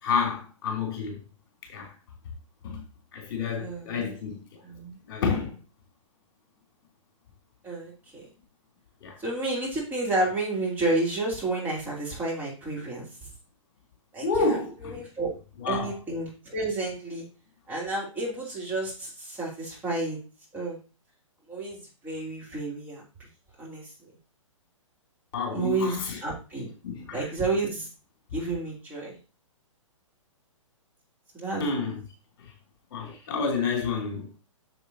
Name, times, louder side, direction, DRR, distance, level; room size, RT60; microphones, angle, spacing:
voice 1, 0.0-1.2 1.7-1.9 2.6-2.8 3.1-4.4 5.1-5.5 9.0-9.2 14.2-15.0 15.6-15.9 25.3-26.2 26.8-27.3 31.6-32.0 32.9-34.4, left 4 dB, 40° left, 3.2 m, -29 dB
voice 2, 3.6-4.1 4.6-5.0 7.6-8.3 9.2-13.1 14.1-14.6 14.8-15.3 15.7-17.2 17.7-20.2 20.5-20.8 21.5-21.8 22.0-23.0 23.6-23.9 25.5-26.7 27.1-27.9 28.3-29.2 31.3-31.8, right 2 dB, 10° right, 3.2 m, -30 dB
10.0 x 6.9 x 2.8 m
figure-of-eight pair, 120°, 17 cm